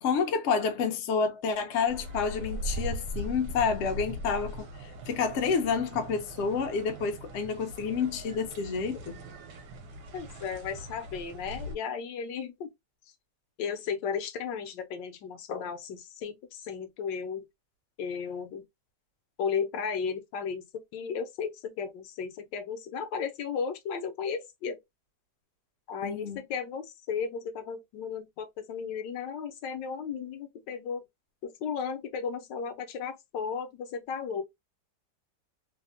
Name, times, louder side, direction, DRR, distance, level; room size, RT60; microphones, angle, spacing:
voice 1, 0.0-9.2 26.0-26.4, left 5 dB, 65° left, 0.7 m, -29 dB
sound 1, 1.9-11.8, equal, 70° right, 1.3 m, -40 dB
voice 2, 10.1-12.7 13.6-17.4 18.0-18.6 19.4-20.7 20.9-24.8 25.9-31.0 31.4-34.4, left 6 dB, 85° left, 1.3 m, -34 dB
3.3 x 2.0 x 2.5 m
omnidirectional pair, 1.9 m